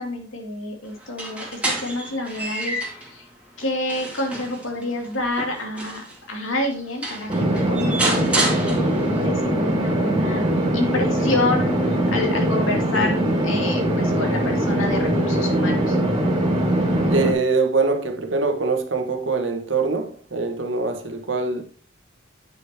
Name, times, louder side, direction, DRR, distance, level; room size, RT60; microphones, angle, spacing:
voice 1, 0.0-2.8 3.0-3.3 3.6-10.4 10.7-13.2 13.4-16.0, left 2 dB, 80° left, 2.5 m, -28 dB
sound 1, 1.0-3.1 3.6-6.2 6.7-6.8 7.0-9.2, right 1 dB, 5° right, 2.3 m, -28 dB
sound 2, 7.3-17.3, right 1 dB, 25° right, 2.7 m, -21 dB
voice 2, 17.1-21.6, right 4 dB, 70° right, 1.4 m, -23 dB
9.1 x 6.8 x 3.0 m
head